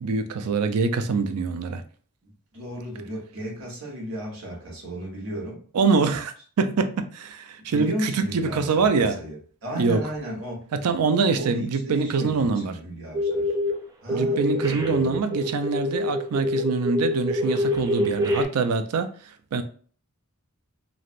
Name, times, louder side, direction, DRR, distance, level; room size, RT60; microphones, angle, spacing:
voice 1, 0.0-1.8 5.7-9.2 9.8-10.0 10.7-12.7 14.1-19.1 19.5-19.6, right 4 dB, 80° right, 0.4 m, -24 dB
voice 2, 2.2-5.6 7.6-10.7 11.3-13.5 14.0-15.2, right 1 dB, 60° right, 1.2 m, -35 dB
sound 1, 13.1-13.8 14.1-18.5, left 1 dB, 15° right, 0.4 m, -25 dB
3.1 x 2.5 x 2.5 m
head